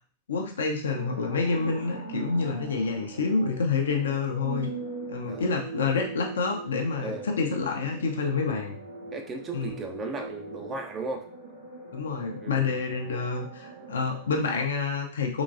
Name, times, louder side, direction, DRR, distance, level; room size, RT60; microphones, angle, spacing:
voice 1, 0.3-4.7 5.1-8.8 9.5-9.8 11.9-15.4, left 4 dB, 65° left, 2 dB, 0.7 m, -28 dB
sound 1, 0.9-14.3, right 3 dB, 75° right, 1.0 m, -41 dB
voice 2, 5.3-5.6 7.0-7.4 9.1-11.2 12.4-12.8, right 3 dB, 25° right, 3 dB, 0.7 m, -36 dB
3.9 x 3.0 x 2.6 m, 0.43 s
figure-of-eight pair, 90°, 0 cm